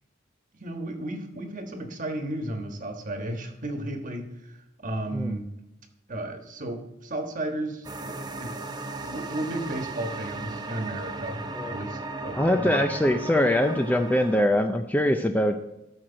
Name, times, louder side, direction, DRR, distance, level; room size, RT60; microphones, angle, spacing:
voice 1, 0.6-5.5 6.1-8.5 9.0-12.9, right 1 dB, 40° right, 4 dB, 1.4 m, -34 dB
sound 1, 7.8-14.5, right 2 dB, 20° right, 0.7 m, -36 dB
voice 2, 12.3-15.6, left 1 dB, 10° left, 6 dB, 0.4 m, -23 dB
13.0 x 6.4 x 3.9 m, 0.92 s
head